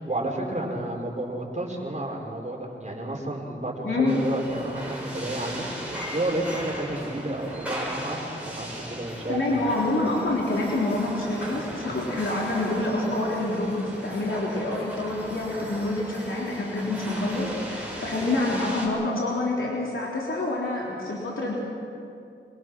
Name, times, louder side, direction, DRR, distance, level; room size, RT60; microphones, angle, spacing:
voice 1, 0.0-5.7 6.1-9.6, right 1 dB, 35° right, -1 dB, 4.7 m, -31 dB
voice 2, 3.8-4.2 9.3-21.5, left 2 dB, 85° left, -5 dB, 3.6 m, -27 dB
sound 1, 4.1-18.9, equal, 5° right, 6.6 m, -37 dB
25.5 x 22.0 x 6.2 m, 2.5 s
wide cardioid pair, 80°, 20 cm